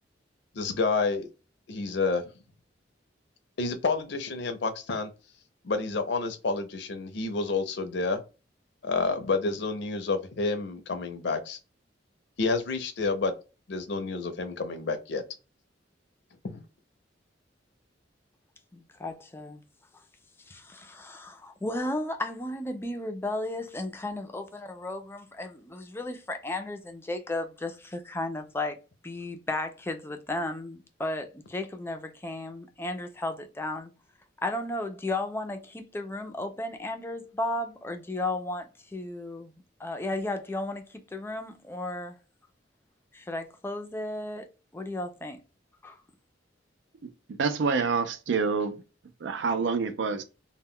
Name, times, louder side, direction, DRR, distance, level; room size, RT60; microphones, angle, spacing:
voice 1, 0.6-1.3 1.7-2.2 3.6-5.1 5.6-8.2 8.8-11.6 12.4-13.3 13.7-15.2 16.4-16.6, left 4 dB, 65° left, 0.5 m, -29 dB
voice 2, 18.7-19.6 20.5-28.8 29.0-33.9 34.4-39.5 39.8-42.2 43.1-44.5 44.7-45.4 45.8-46.0, left 2 dB, 15° left, 0.4 m, -34 dB
voice 3, 47.4-48.8 49.2-50.2, right 5 dB, 75° right, 0.4 m, -27 dB
2.1 x 2.1 x 3.5 m
head